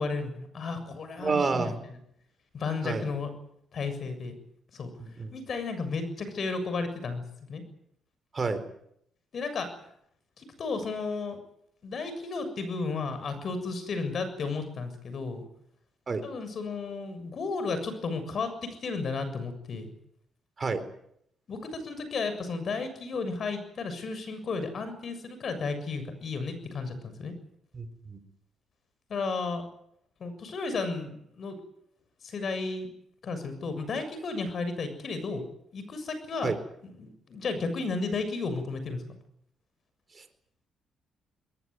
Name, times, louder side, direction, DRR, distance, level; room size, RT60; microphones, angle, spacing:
voice 1, 0.0-1.8 2.5-3.3 3.7-4.4 4.7-4.9 5.3-7.6 9.3-9.7 10.4-11.4 11.8-15.4 16.2-19.9 21.5-27.3 29.1-29.6 30.2-31.6 32.2-32.9 33.2-35.5 35.7-36.6 36.8-39.0, left 4 dB, 50° left, 10 dB, 7.1 m, -33 dB
voice 2, 1.2-1.7 2.8-3.0 5.0-5.3 8.3-8.6 16.1-16.2 20.6-20.8 27.7-28.2 36.4-36.5, right 4 dB, 35° right, 10 dB, 4.2 m, -29 dB
22.0 x 19.5 x 9.6 m, 0.73 s
cardioid pair, 90°, 0 cm